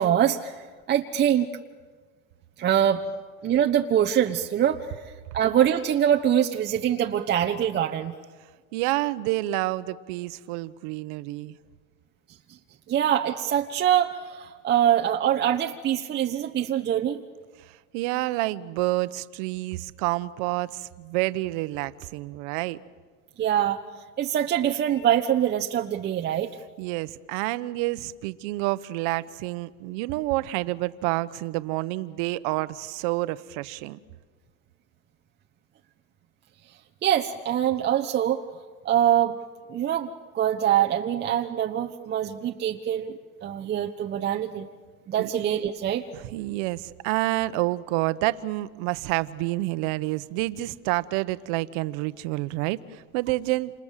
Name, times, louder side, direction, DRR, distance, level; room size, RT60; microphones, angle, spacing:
voice 1, 0.0-1.5 2.6-3.0 3.4-4.8 5.3-8.1 12.9-17.2 23.4-23.8 24.2-26.5 37.0-38.4 38.8-39.4 39.7-40.1 40.3-43.1 43.4-44.7 45.1-46.1, right 10 dB, 25° right, 3 dB, 1.0 m, -24 dB
voice 2, 8.7-11.5 17.6-22.8 26.8-34.0 45.2-45.3 46.1-53.7, right 18 dB, 55° right, 14 dB, 1.1 m, -28 dB
29.0 x 27.5 x 7.5 m, 1.5 s
supercardioid pair, 140°, 42 cm